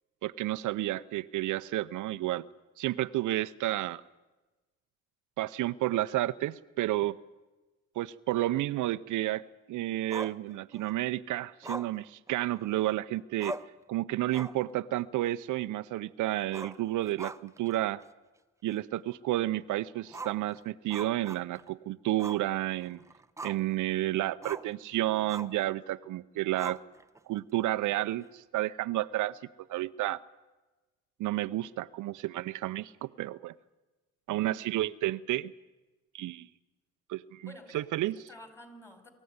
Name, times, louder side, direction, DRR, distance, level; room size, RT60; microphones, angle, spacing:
voice 1, 0.2-2.4 2.8-4.0 5.4-7.2 8.0-13.6 13.9-18.0 18.6-23.0 23.4-26.8 27.3-29.4 29.7-30.2 31.2-33.5 34.3-35.5 36.1-36.5 37.1-38.2, right 15 dB, 80° right, 12 dB, 0.7 m, -31 dB
Growling, 10.1-10.9 11.6-12.9 13.1-13.2 13.4-13.8 14.2-14.7 15.0-15.1 16.4-17.7 18.0-18.1 18.7-18.8 20.1-21.7 22.2-22.5 22.8-23.7 24.4-24.7 25.3-25.6 26.6-27.2, right 2 dB, 10° right, 0.7 m, -42 dB
voice 2, 34.5-34.9 37.4-39.1, left 1 dB, 10° left, 7 dB, 5.0 m, -51 dB
24.5 x 15.0 x 9.6 m, 1.2 s
cardioid pair, 90°, 30 cm